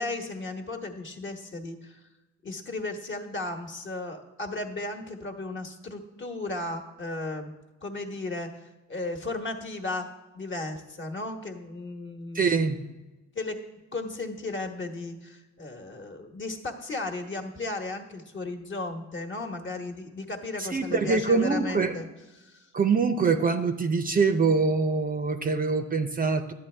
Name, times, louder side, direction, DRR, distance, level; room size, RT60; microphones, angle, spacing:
voice 1, 0.0-2.0 2.4-7.5 7.8-10.1 10.3-12.6 13.3-13.6 13.9-22.1 22.4-22.7, left 2 dB, 40° left, 4 dB, 1.2 m, -35 dB
voice 2, 12.3-12.8 20.6-22.0 22.7-26.5, right 4 dB, 30° right, 8 dB, 0.5 m, -24 dB
11.0 x 7.9 x 3.3 m, 1.1 s
cardioid pair, 90°, 30 cm